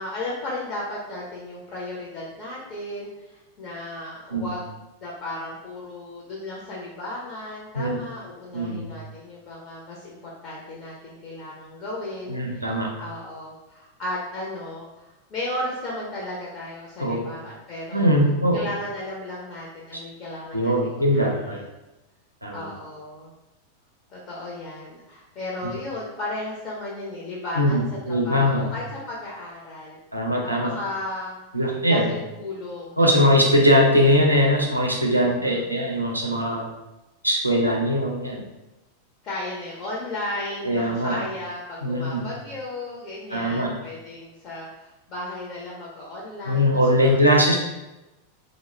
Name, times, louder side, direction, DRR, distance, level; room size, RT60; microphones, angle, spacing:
voice 1, 0.0-4.6 5.0-18.1 18.5-21.6 22.5-23.3 24.1-30.0 30.4-31.3 31.8-33.1 33.4-33.6 33.9-34.1 35.2-36.0 39.2-47.2, left 1 dB, 35° left, -5 dB, 0.5 m, -35 dB
voice 2, 8.5-8.8 12.3-12.9 17.0-17.3 17.9-18.7 20.5-21.6 22.4-22.7 27.6-28.7 30.1-30.7 31.5-32.1 33.0-36.7 37.2-38.4 40.6-41.2 41.8-42.3 43.3-43.7 46.5-47.5, equal, 85° right, -1 dB, 0.4 m, -21 dB
2.2 x 2.0 x 3.1 m, 1.0 s
figure-of-eight pair, 90°, 0 cm